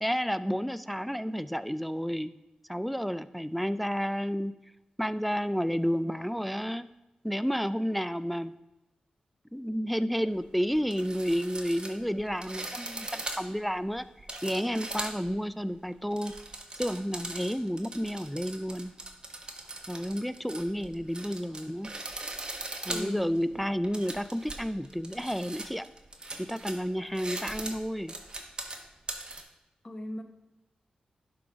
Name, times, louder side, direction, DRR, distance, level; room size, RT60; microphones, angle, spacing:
voice 1, 0.0-2.3 2.7-4.5 5.0-6.9 7.2-8.5 9.5-14.1 14.4-16.3 16.8-18.9 19.9-21.9 22.9-25.8 26.4-28.1, equal, ahead, 14 dB, 0.3 m, -31 dB
sound 1, 10.3-10.4 10.7-15.4 15.9-29.4, right 2 dB, 35° right, 1.1 m, -40 dB
voice 2, 22.9-23.3 29.8-30.2, left 1 dB, 30° left, 6 dB, 0.9 m, -37 dB
11.0 x 3.9 x 4.8 m, 0.99 s
cardioid pair, 65°, 3 cm